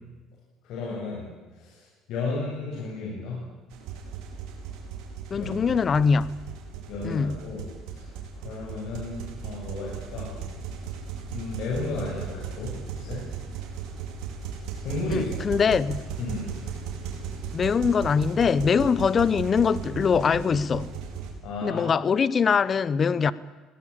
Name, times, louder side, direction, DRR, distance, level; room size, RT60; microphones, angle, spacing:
voice 1, 0.7-1.3 1.6-1.8 2.1-3.4 5.3-5.7 6.9-7.7 7.9-8.1 8.4-10.3 11.3-13.2 14.8-15.3 16.2-16.5 21.4-21.9, left 3 dB, 65° left, -4 dB, 7.8 m, -33 dB
sound 1, 3.7-21.3, right 6 dB, 80° right, 5.1 m, -36 dB
voice 2, 5.3-6.3 7.0-7.4 15.1-16.1 17.5-20.9 21.6-23.3, left 6 dB, 30° left, 18 dB, 0.8 m, -23 dB
21.5 x 18.5 x 8.7 m, 1.2 s
cardioid pair, 125°, 0 cm